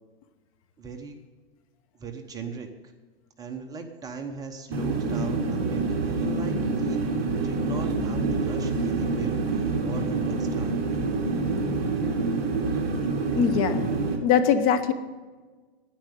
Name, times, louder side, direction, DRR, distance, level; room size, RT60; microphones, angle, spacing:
voice 1, 0.8-1.2 2.0-2.7 3.4-7.0 7.4-10.8, right 5 dB, 10° right, 4 dB, 0.9 m, -38 dB
sound 1, 4.7-14.2, right 3 dB, 30° right, 2.2 m, -27 dB
voice 2, 13.4-13.9 14.2-14.9, left 8 dB, 35° left, 10 dB, 1.0 m, -21 dB
10.5 x 9.7 x 8.2 m, 1.4 s
hypercardioid pair, 145°, 30 cm